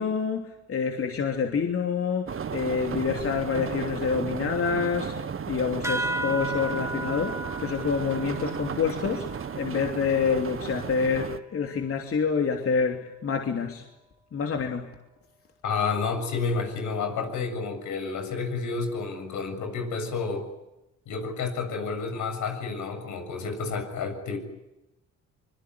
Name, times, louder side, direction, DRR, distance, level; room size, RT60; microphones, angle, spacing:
voice 1, 0.0-13.8 14.3-14.9, left 6 dB, 50° left, 3 dB, 3.1 m, -27 dB
sound 1, 2.3-11.4, right 7 dB, 45° right, 1.6 m, -34 dB
sound 2, 5.8-10.8, right 2 dB, 10° right, 2.2 m, -35 dB
voice 2, 15.6-20.5 21.1-24.4, left 4 dB, 80° left, 6 dB, 7.1 m, -30 dB
24.5 x 22.5 x 9.7 m, 0.95 s
cardioid pair, 90°, 30 cm